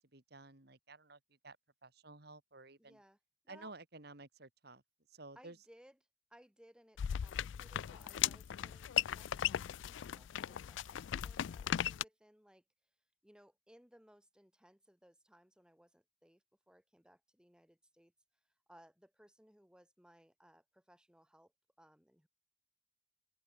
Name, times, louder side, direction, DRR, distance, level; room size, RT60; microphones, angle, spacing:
voice 1, 0.0-1.6 1.8-3.0 3.5-4.8 5.1-5.6, right 3 dB, 55° right, 2.6 m, -54 dB
voice 2, 2.8-3.2 3.4-3.7 5.4-6.0 6.3-12.6 13.2-18.1 18.4-21.5 21.8-22.3, equal, 5° right, 3.6 m, -64 dB
sound 1, 7.0-12.0, left 10 dB, 75° left, 0.3 m, -37 dB
open air
head